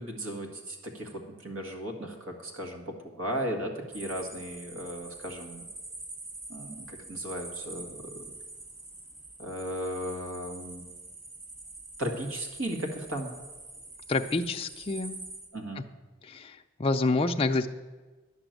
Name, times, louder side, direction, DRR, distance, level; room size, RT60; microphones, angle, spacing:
voice 1, 0.0-5.7 6.5-8.2 9.4-10.8 12.0-13.3 15.5-15.9, right 1 dB, 85° right, 4 dB, 1.8 m, -36 dB
sound 1, 3.9-15.5, right 2 dB, 35° right, 2.1 m, -45 dB
voice 2, 14.1-15.2 16.2-17.7, left 3 dB, 25° left, 4 dB, 0.4 m, -28 dB
11.0 x 6.0 x 9.0 m, 1.3 s
head